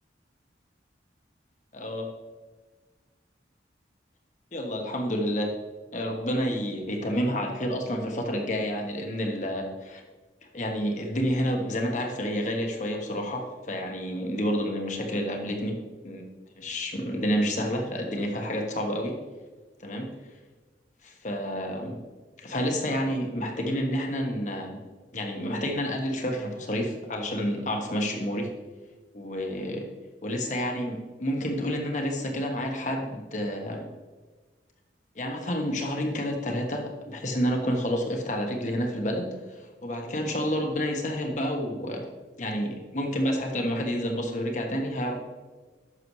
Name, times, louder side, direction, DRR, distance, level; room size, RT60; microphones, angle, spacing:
voice 1, 1.7-2.1 4.5-5.5 5.9-10.0 10.5-15.8 16.0-16.2 16.6-19.2 19.8-20.1 21.0-22.0 22.4-24.8 25.1-28.5 29.1-29.9 30.2-33.9 35.1-42.1 42.4-45.2, equal, 45° left, 2 dB, 1.3 m, -29 dB
11.0 x 6.6 x 3.2 m, 1.3 s
head